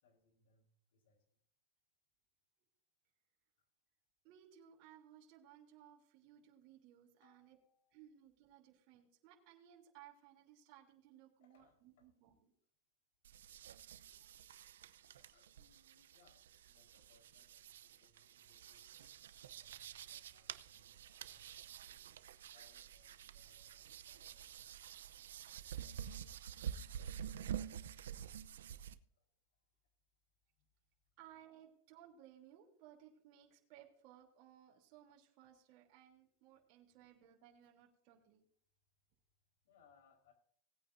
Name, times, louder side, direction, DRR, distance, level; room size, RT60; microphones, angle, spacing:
voice 1, 0.0-1.2 7.2-8.0 11.4-12.1 15.1-18.9 19.4-22.0 22.5-26.1 29.2-29.3 37.1-37.2 39.6-40.3, left 4 dB, 70° left, 3 dB, 4.4 m, -73 dB
voice 2, 4.2-7.6 7.9-12.5 13.5-13.6 31.2-38.4, right 11 dB, 45° right, -1 dB, 3.2 m, -62 dB
sound 1, 13.2-29.0, right 9 dB, 90° right, 0.7 m, -49 dB
19.5 x 9.1 x 2.7 m, 0.63 s
supercardioid pair, 145°, 0 cm